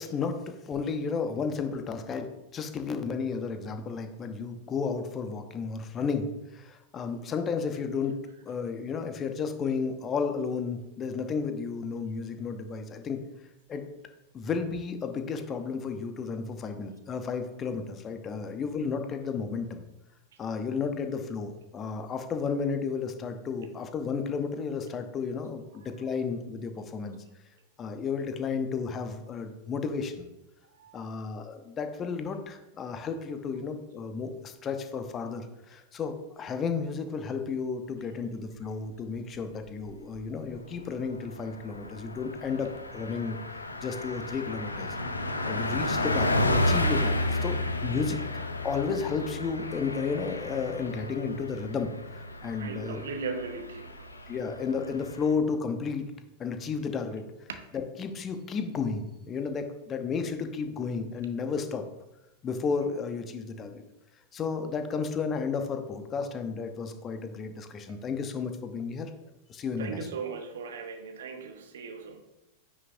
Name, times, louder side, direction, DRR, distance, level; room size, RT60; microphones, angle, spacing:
voice 1, 0.0-8.1 8.4-13.2 13.7-13.8 14.3-19.8 20.4-27.2 27.8-30.3 30.9-43.4 43.8-45.0 45.4-48.2 48.6-53.0 54.3-56.0 56.4-61.8 62.4-63.8 64.3-69.1 69.5-70.0, left 5 dB, 25° left, 7 dB, 0.9 m, -33 dB
Car passing by, 39.7-40.3 40.6-40.8 41.0-55.3, left 1 dB, 80° left, 0.6 m, -32 dB
voice 2, 52.6-54.1 69.8-72.2, right 5 dB, 60° right, 7 dB, 1.0 m, -38 dB
9.4 x 6.0 x 2.6 m, 0.93 s
figure-of-eight pair, 90°, 0 cm